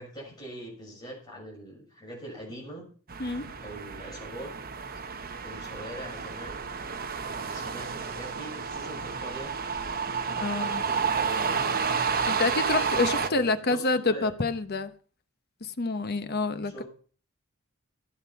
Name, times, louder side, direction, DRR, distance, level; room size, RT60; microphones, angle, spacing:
voice 1, 0.0-2.9 3.6-4.5 5.4-6.7 7.5-9.5 10.2-11.6 13.1-14.3 16.6-16.9, right 1 dB, 20° left, 6.9 m, -42 dB
sound 1, 3.1-13.3, right 6 dB, 45° right, 1.0 m, -31 dB
voice 2, 10.3-10.8 12.3-14.9 15.6-16.8, left 3 dB, 45° left, 0.9 m, -27 dB
15.0 x 8.9 x 5.8 m
head